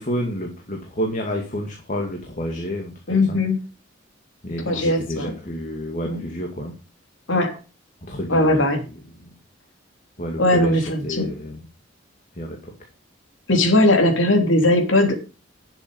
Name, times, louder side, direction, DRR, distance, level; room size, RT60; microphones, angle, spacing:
voice 1, 0.0-3.4 4.4-6.7 8.1-8.9 10.2-11.6 12.4-12.7, equal, 40° left, 2 dB, 2.2 m, -30 dB
voice 2, 3.1-3.6 4.7-5.3 6.1-6.2 7.3-7.6 8.3-8.8 10.4-11.3 13.5-15.2, left 1 dB, 75° left, 4 dB, 3.3 m, -19 dB
11.5 x 7.2 x 5.2 m, 0.32 s
head